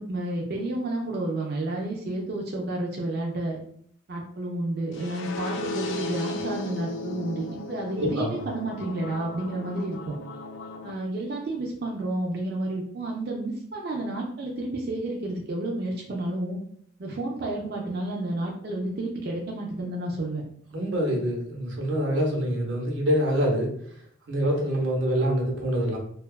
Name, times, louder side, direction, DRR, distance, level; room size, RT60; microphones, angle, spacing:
voice 1, 0.0-3.6 4.1-10.2 10.8-16.6 17.0-20.4, right 2 dB, 55° right, -2 dB, 0.4 m, -31 dB
sound 1, 4.9-10.9, left 2 dB, 85° left, 0.4 m, -36 dB
voice 2, 7.9-8.4 20.7-23.7 24.3-26.0, equal, 90° right, 0 dB, 0.7 m, -25 dB
2.7 x 2.3 x 2.2 m, 0.63 s
head